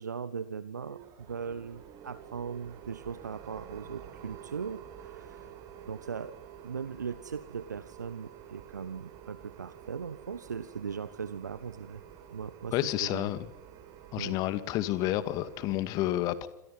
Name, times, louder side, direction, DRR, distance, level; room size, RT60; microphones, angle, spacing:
voice 1, 0.0-5.5 5.9-6.3 6.6-12.0 12.3-13.3 14.2-14.4, right 6 dB, 75° right, 15 dB, 1.2 m, -39 dB
sound 1, 0.8-15.8, right 9 dB, 40° right, 5.4 m, -50 dB
voice 2, 12.7-13.4 14.1-16.5, left 14 dB, 40° left, 13 dB, 2.2 m, -30 dB
28.0 x 27.0 x 5.8 m, 0.88 s
figure-of-eight pair, 90°, 10 cm